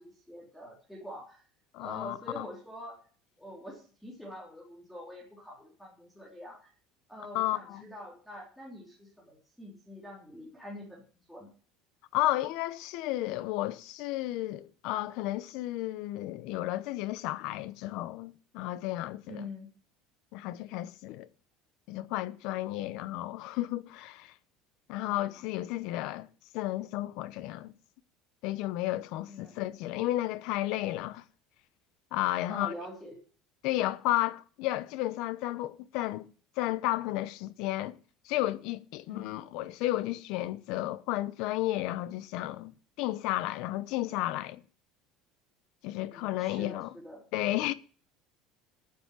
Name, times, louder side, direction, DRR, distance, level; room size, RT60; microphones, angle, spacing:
voice 1, 0.0-1.4 1.8-3.0 3.4-6.7 7.1-11.0 11.3-11.5 19.3-19.7 25.0-25.4 29.3-29.6 32.5-33.2 39.1-39.4 46.0-47.2, left 1 dB, ahead, 3.4 m, -45 dB
voice 2, 1.7-2.5 7.3-7.8 12.1-19.4 20.3-21.3 21.9-24.3 24.9-26.3 26.5-27.7 28.4-31.2 32.1-32.7 33.6-36.3 36.6-38.0 38.3-44.6 45.8-46.9 47.3-47.7, left 16 dB, 60° left, 0.8 m, -32 dB
9.5 x 7.0 x 9.1 m
cardioid pair, 165°, 0 cm